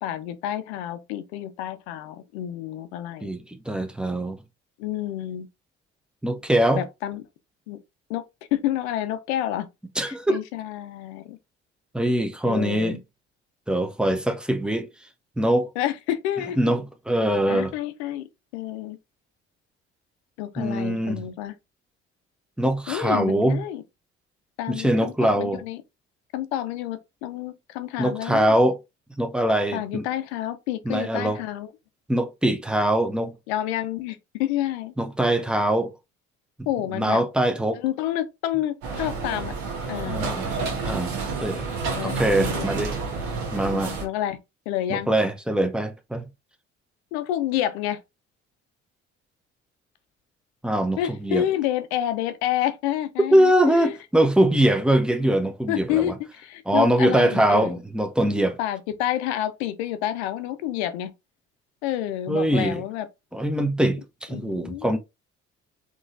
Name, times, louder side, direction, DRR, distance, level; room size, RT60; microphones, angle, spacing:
voice 1, 0.0-3.3 4.8-5.5 6.8-7.2 7.7-7.8 8.1-8.2 8.5-9.7 10.0-11.4 12.4-13.0 15.8-16.6 17.5-18.2 18.5-19.0 20.4-21.5 22.9-23.8 24.6-25.8 26.3-28.5 29.7-31.7 33.5-34.9 36.7-37.2 37.7-39.5 39.9-40.3 41.9-42.8 43.6-44.4 44.7-45.1 47.1-48.0 51.0-53.9 55.7-57.8 58.6-61.1 61.8-63.1 64.3-65.0, left 12 dB, 70° left, 0.6 m, -29 dB
voice 2, 3.2-4.4 6.2-6.8 10.0-10.4 11.9-13.0 13.7-14.9 15.4-15.7 16.6-17.7 20.6-21.2 22.6-23.6 24.7-25.6 28.0-28.8 29.2-30.0 30.9-31.4 32.1-33.3 35.0-35.9 36.9-37.8 40.1-40.5 40.8-41.1 41.4-41.6 42.0-43.0 43.5-44.0 44.9-46.2 50.6-51.4 53.3-56.1 56.7-58.6 62.3-62.8 63.3-65.0, right 1 dB, 5° right, 0.7 m, -22 dB
sound 1, 38.8-44.1, right 4 dB, 65° right, 1.3 m, -29 dB
3.8 x 3.0 x 2.6 m
figure-of-eight pair, 50°, 35 cm